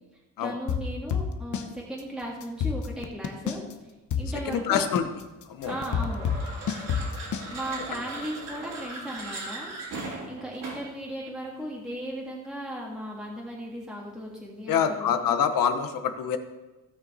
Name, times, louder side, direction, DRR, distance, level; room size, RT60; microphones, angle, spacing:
voice 1, 0.4-3.9 4.2-4.9 5.7-6.3 7.5-15.4, right 1 dB, ahead, -4 dB, 1.8 m, -37 dB
sound 1, 0.7-1.7 2.0-2.1 2.4-3.7 4.1-7.5, left 7 dB, 60° left, 1.0 m, -28 dB
voice 2, 4.5-5.0 5.5-5.7 14.7-16.4, left 8 dB, 80° left, 8 dB, 1.0 m, -25 dB
sound 2, 5.6-11.0, right 2 dB, 70° right, 4.1 m, -38 dB
16.5 x 6.1 x 4.1 m, 1.1 s
cardioid pair, 140°, 33 cm